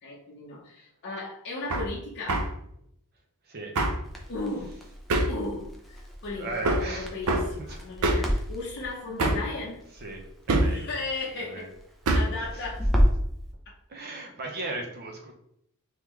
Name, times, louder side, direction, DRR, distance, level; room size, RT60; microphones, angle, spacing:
voice 1, 0.0-2.5 4.3-4.8 5.3-9.8 10.5-11.7 12.1-12.9, left 3 dB, 50° left, -4 dB, 0.7 m, -36 dB
Hammer, 1.7-1.9 2.3-2.5 3.7-4.0 5.1-5.4 6.6-6.9 7.3-7.5 8.0-8.3 9.2-9.5 10.5-10.8 12.1-12.4, right 2 dB, 70° right, 0.5 m, -24 dB
Crackle, 4.0-13.3, equal, ahead, 0.6 m, -31 dB
voice 2, 6.4-7.8 9.9-10.9 11.4-11.7 12.5-12.6 13.9-15.3, right 2 dB, 45° right, 1 dB, 0.8 m, -37 dB
3.6 x 3.1 x 3.1 m, 0.73 s
head